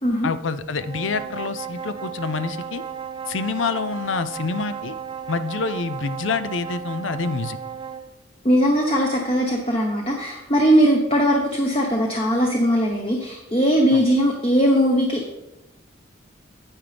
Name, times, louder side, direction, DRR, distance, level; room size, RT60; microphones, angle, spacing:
voice 1, 0.2-2.8 3.3-5.0 5.3-7.6 13.9-14.0, left 4 dB, 80° left, 13 dB, 0.5 m, -27 dB
sound 1, 0.7-8.1, right 7 dB, 25° right, 0.4 m, -34 dB
voice 2, 8.4-15.3, equal, 30° left, 0 dB, 1.0 m, -20 dB
9.7 x 8.8 x 3.4 m, 0.94 s
head